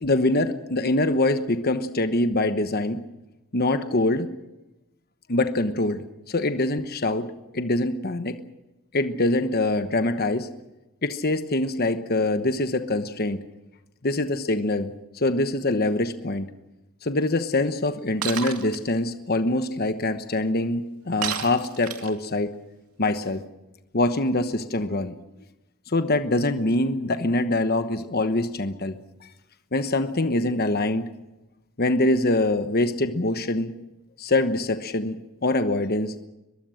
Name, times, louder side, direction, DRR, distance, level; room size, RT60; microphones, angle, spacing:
voice 1, 0.0-3.0 3.5-4.3 5.3-6.0 6.3-7.3 7.5-8.4 8.9-10.5 11.0-13.4 14.0-16.5 17.0-22.5 23.0-23.4 23.9-25.1 25.9-29.0 29.7-31.0 31.8-33.7 34.2-36.1, left 2 dB, 45° left, 9 dB, 1.1 m, -24 dB
Shatter, 18.2-18.8 21.2-22.3, right 8 dB, 85° right, 2.4 m, -30 dB
23.0 x 22.0 x 6.4 m, 0.98 s
head